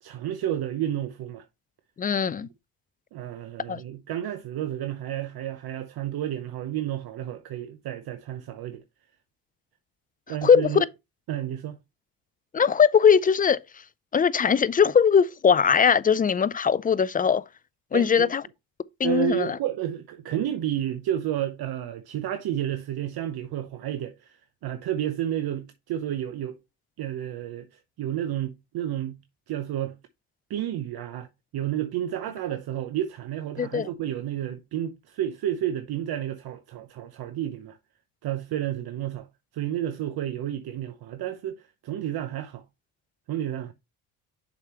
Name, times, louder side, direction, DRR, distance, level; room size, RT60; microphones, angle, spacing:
voice 1, 0.0-1.4 3.1-8.8 10.3-10.8 11.3-11.8 17.9-18.3 19.0-26.6 27.0-29.2 29.5-30.0 30.5-31.3 31.5-37.8 38.2-39.3 39.5-42.6 43.3-43.7, right 11 dB, 60° right, 0.8 m, -31 dB
voice 2, 2.0-2.5 3.7-3.8 10.4-10.9 12.5-13.6 14.1-17.4 17.9-18.4 19.0-19.6 33.6-33.9, left 7 dB, 20° left, 0.4 m, -20 dB
6.6 x 5.0 x 3.0 m
supercardioid pair, 70°, 41 cm